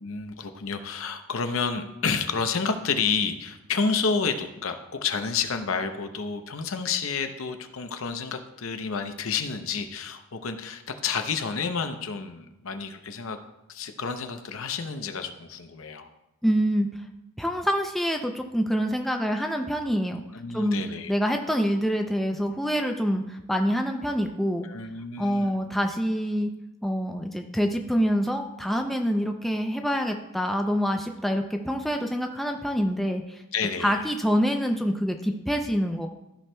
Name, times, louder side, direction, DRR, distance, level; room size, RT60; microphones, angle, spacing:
voice 1, 0.0-13.4 13.7-16.1 20.3-21.1 24.6-25.6 33.5-34.0, left 5 dB, 65° left, 7 dB, 0.7 m, -30 dB
voice 2, 16.4-16.9 17.4-20.2 20.5-20.8 21.1-24.7 25.2-26.5 26.8-33.4 33.8-36.1, equal, ahead, 3 dB, 0.4 m, -26 dB
14.0 x 5.9 x 2.2 m, 0.93 s
head